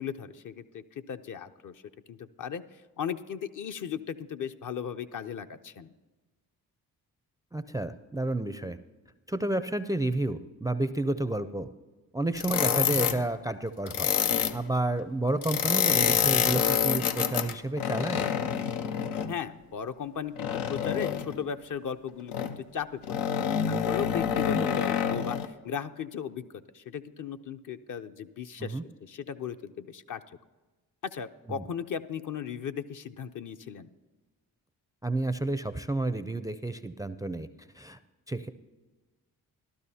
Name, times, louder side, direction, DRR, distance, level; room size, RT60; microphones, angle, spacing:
voice 1, 0.0-1.8 2.1-2.6 3.0-5.9 19.3-23.2 23.7-30.2 31.0-33.9, left 8 dB, 50° left, 9 dB, 0.6 m, -36 dB
voice 2, 7.5-8.8 9.3-11.7 12.1-14.1 14.5-18.2 28.6-28.8 31.5-31.6 35.0-37.5 37.8-38.0 38.3-38.5, right 2 dB, 10° right, 12 dB, 0.4 m, -30 dB
sound 1, 12.4-13.2 13.9-14.6 15.4-19.3 20.4-21.3 22.3-22.6 23.0-25.5, left 8 dB, 90° left, 0.6 m, -27 dB
14.0 x 12.0 x 2.8 m, 1.2 s
supercardioid pair, 45°, 41 cm